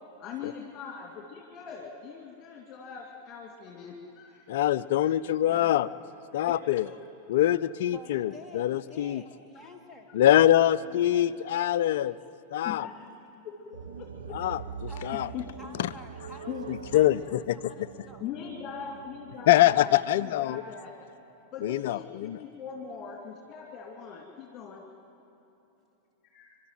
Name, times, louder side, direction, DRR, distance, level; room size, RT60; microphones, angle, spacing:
voice 1, 0.2-4.7 5.0-5.1 6.3-6.8 7.5-7.6 12.6-13.1 13.4-14.5 15.3-15.7 16.5-16.7 18.2-21.0 21.5-24.8 26.3-26.6, left 7 dB, 30° left, -1 dB, 2.8 m, -41 dB
voice 2, 4.5-5.9 6.3-6.9 7.3-9.2 10.1-12.2 12.5-12.9 14.3-15.3 15.8-15.9 16.7-17.7 19.5-20.6 21.6-22.4, left 12 dB, 55° left, 16 dB, 0.5 m, -24 dB
voice 3, 5.4-5.8 7.9-10.1 10.8-12.3 14.9-17.1 17.5-18.3, left 1 dB, 5° left, -2 dB, 2.7 m, -50 dB
sound 1, 13.7-20.0, right 7 dB, 70° right, 0.9 m, -43 dB
28.5 x 12.5 x 9.2 m, 2.9 s
figure-of-eight pair, 90°, 0 cm